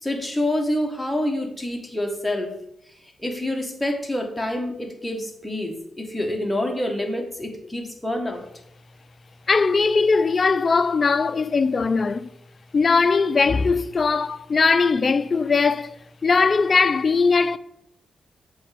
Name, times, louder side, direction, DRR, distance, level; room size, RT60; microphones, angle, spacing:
voice 1, 0.0-2.5 3.2-8.4, left 1 dB, 5° left, 1.4 m, -27 dB
voice 2, 9.5-12.3 12.7-15.9 16.2-17.6, left 4 dB, 45° left, 0.4 m, -20 dB
6.9 x 3.3 x 5.0 m
cardioid pair, 75°, 0 cm